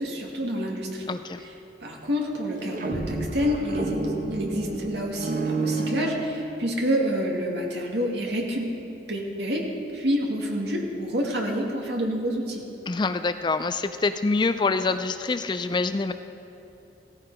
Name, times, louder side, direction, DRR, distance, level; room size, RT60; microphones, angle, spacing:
voice 1, 0.0-1.1 1.8-4.0 4.3-8.7 9.0-12.6, equal, 65° right, -1 dB, 2.4 m, -28 dB
voice 2, 1.1-1.4 12.9-16.1, left 3 dB, 25° left, 11 dB, 0.3 m, -25 dB
sound 1, 2.5-6.8, right 2 dB, 45° right, 1.2 m, -30 dB
16.0 x 15.0 x 5.0 m, 2.8 s
head